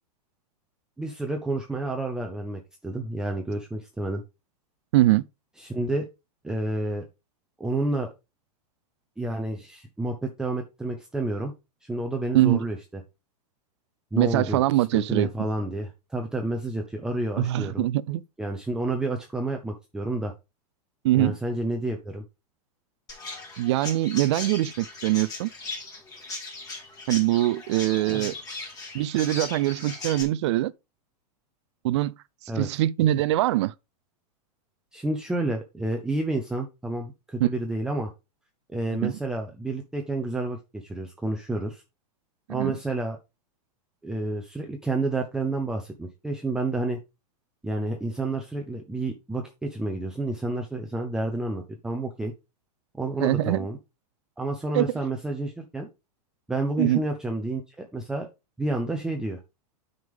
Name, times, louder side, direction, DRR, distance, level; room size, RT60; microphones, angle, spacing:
voice 1, 1.0-4.2 5.6-6.1 6.4-7.0 7.6-8.1 9.2-11.5 11.8-13.0 14.1-17.8 18.4-20.3 21.1-22.2 28.0-28.3 32.5-32.7 34.9-38.1 38.7-41.8 42.5-43.2 44.0-47.0 47.6-52.3 52.9-53.8 54.4-55.9 56.5-58.3 58.6-59.4, right 2 dB, 5° right, 0.6 m, -30 dB
voice 2, 4.9-5.2 12.3-12.6 14.2-15.3 17.4-18.2 21.0-21.4 23.6-25.5 27.1-28.3 28.9-30.7 31.8-32.2 32.6-33.7 37.4-37.5 39.0-39.1 42.5-42.8 53.2-53.7 54.7-54.9 56.8-57.0, right 15 dB, 45° right, 0.4 m, -23 dB
Chirp tweet, 23.1-30.2, left 3 dB, 20° left, 2.1 m, -38 dB
9.4 x 5.1 x 3.6 m
supercardioid pair, 160°, 20 cm